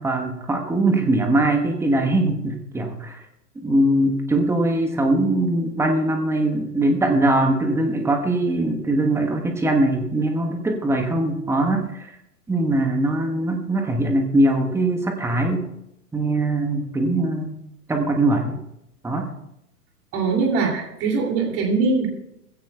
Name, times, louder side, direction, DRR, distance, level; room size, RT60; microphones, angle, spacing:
voice 1, 0.0-3.2 3.6-12.1 12.5-15.7 16.1-17.6 17.9-18.6 19.0-19.3, right 1 dB, 5° right, 4 dB, 1.2 m, -21 dB
voice 2, 20.1-22.1, right 4 dB, 30° right, 1 dB, 2.8 m, -22 dB
20.5 x 16.0 x 2.3 m, 0.85 s
figure-of-eight pair, 110°, 48 cm